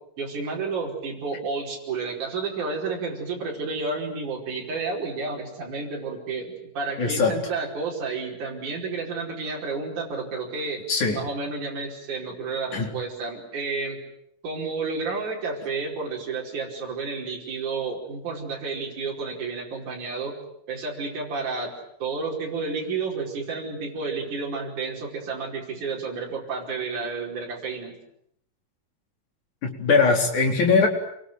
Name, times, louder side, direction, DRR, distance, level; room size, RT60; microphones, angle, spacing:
voice 1, 0.2-10.8 11.1-14.0 14.4-20.4 20.7-21.7 22.0-28.0, right 4 dB, 65° right, -2 dB, 6.4 m, -31 dB
voice 2, 7.0-7.4 10.9-11.2 12.7-12.9 29.6-30.9, left 4 dB, 65° left, 2 dB, 5.6 m, -21 dB
27.5 x 23.5 x 9.3 m, 0.73 s
omnidirectional pair, 3.8 m